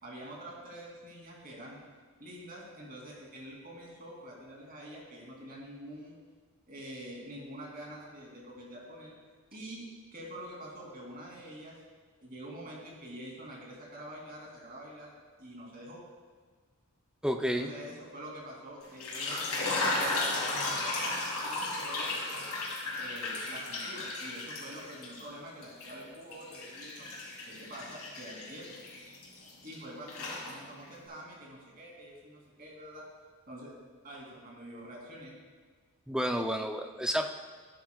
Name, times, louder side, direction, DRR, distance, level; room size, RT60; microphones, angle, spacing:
voice 1, 0.0-1.8 2.2-6.2 6.7-9.1 9.5-9.8 10.1-11.8 12.2-15.1 15.4-16.0 17.5-22.4 23.0-27.1 27.5-28.7 29.6-33.0 33.5-33.7 34.0-35.3, right 1 dB, 40° right, -4 dB, 2.9 m, -46 dB
voice 2, 17.2-17.7 36.1-37.3, equal, 5° right, 4 dB, 0.5 m, -30 dB
sound 1, 18.8-25.2 25.6-29.8 30.1-30.9, left 2 dB, 85° left, 3.2 m, -35 dB
14.0 x 10.5 x 2.4 m, 1.5 s
head